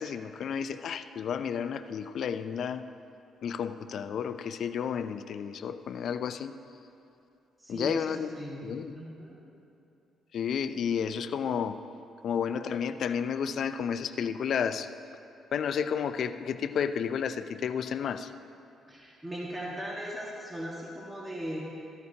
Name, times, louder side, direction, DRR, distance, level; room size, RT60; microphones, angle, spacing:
voice 1, 0.0-2.8 3.4-6.5 7.7-8.3 8.6-8.9 10.3-11.8 12.2-14.9 15.5-18.3, left 7 dB, 65° left, 11 dB, 0.4 m, -31 dB
voice 2, 7.6-9.4 18.9-21.6, equal, 15° right, -5 dB, 1.8 m, -38 dB
14.0 x 13.5 x 2.8 m, 2.7 s
cardioid pair, 90°, 0 cm